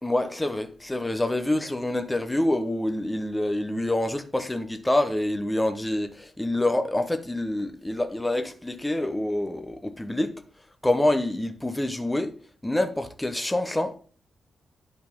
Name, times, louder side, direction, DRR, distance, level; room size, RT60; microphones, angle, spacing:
voice 1, 0.0-10.4 10.8-12.4 12.6-13.9, left 1 dB, 5° left, 0.8 m, -26 dB
11.5 x 4.2 x 3.5 m
wide cardioid pair, 175°, 0 cm